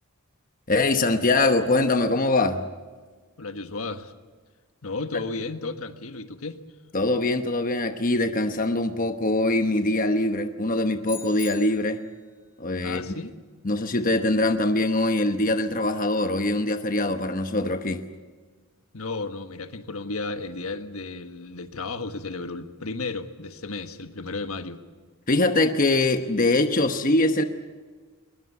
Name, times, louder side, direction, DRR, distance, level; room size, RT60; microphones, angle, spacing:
voice 1, 0.7-2.6 6.9-12.0 12.6-13.0 13.6-18.0 25.3-27.4, left 2 dB, 40° left, 7 dB, 1.1 m, -23 dB
voice 2, 3.4-4.1 4.8-6.6 12.8-13.3 18.9-24.8, left 3 dB, 75° left, 8 dB, 1.4 m, -33 dB
sound 1, 11.0-12.2, left 6 dB, 20° left, 5.5 m, -41 dB
22.0 x 20.5 x 8.3 m, 1.4 s
head